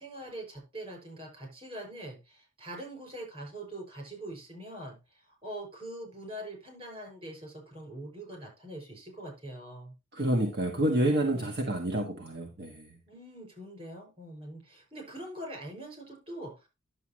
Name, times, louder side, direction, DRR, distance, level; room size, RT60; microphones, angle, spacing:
voice 1, 0.0-9.9 11.3-11.5 13.1-16.7, right 1 dB, 30° right, 2 dB, 5.8 m, -43 dB
voice 2, 10.1-12.9, right 1 dB, 60° right, 2 dB, 1.5 m, -28 dB
10.5 x 7.6 x 3.1 m, 0.26 s
head